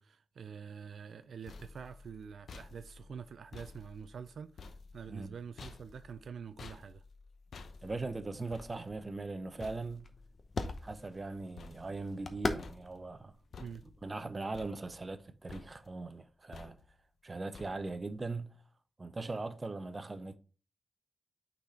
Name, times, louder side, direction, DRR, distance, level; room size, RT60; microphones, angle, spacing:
voice 1, 0.0-7.0 13.6-13.8, right 6 dB, 85° right, 0.4 m, -46 dB
sound 1, 1.1-12.3 12.6-13.2 13.5-14.2 14.5-15.2 15.5-16.0 16.5-17.1 17.5-18.1, left 4 dB, 90° left, 0.7 m, -53 dB
voice 2, 7.8-10.1 10.8-13.3 14.0-16.8 17.2-18.6 19.0-20.4, right 3 dB, 35° right, 0.7 m, -40 dB
sound 2, 8.4-14.7, left 3 dB, 50° left, 0.8 m, -42 dB
6.0 x 4.1 x 4.2 m
wide cardioid pair, 85°, 0 cm